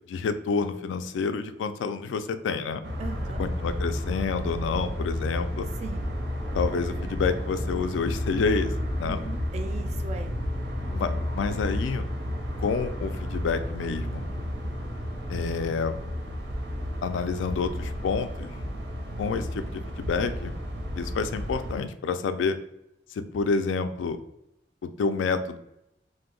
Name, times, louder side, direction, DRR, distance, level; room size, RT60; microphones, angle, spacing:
voice 1, 0.1-2.8 3.4-5.7 6.5-8.7 9.0-9.2 10.9-12.1 12.6-14.3 15.3-16.0 17.0-18.5 19.2-20.5 21.0-22.6 23.1-24.2 24.8-25.6, left 5 dB, 85° left, 10 dB, 0.3 m, -28 dB
sound 1, 2.8-21.8, equal, 80° right, 0.6 m, -32 dB
voice 2, 3.0-3.5 5.8-6.1 9.0-10.3, right 4 dB, 35° right, 6 dB, 0.3 m, -38 dB
2.7 x 2.0 x 3.7 m, 0.83 s
head